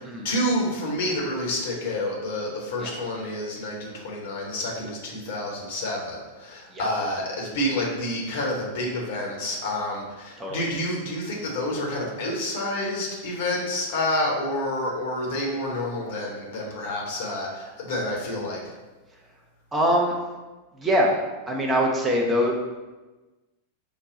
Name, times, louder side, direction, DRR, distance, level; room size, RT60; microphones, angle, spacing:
voice 1, 0.0-18.6, left 1 dB, 55° left, -2 dB, 1.1 m, -29 dB
voice 2, 19.7-20.2 20.7-21.2 21.5-22.8, equal, 15° right, -1 dB, 0.7 m, -23 dB
5.2 x 2.3 x 3.9 m, 1.2 s
figure-of-eight pair, 90°, 0 cm